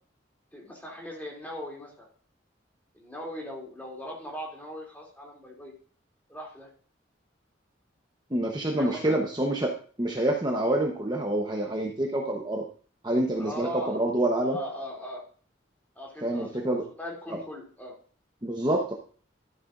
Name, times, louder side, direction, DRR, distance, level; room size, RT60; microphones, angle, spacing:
voice 1, 0.5-2.1 2.9-5.7 6.3-6.7 8.8-9.2 13.4-14.0 14.4-15.2 15.9-16.6 17.0-18.0, left 1 dB, 10° left, -2 dB, 2.8 m, -39 dB
voice 2, 8.3-9.7 10.0-12.6 13.0-14.6 16.2-16.8 17.3-17.4 18.4-18.9, right 1 dB, 20° right, 0 dB, 1.0 m, -27 dB
12.5 x 9.2 x 2.6 m, 0.42 s
head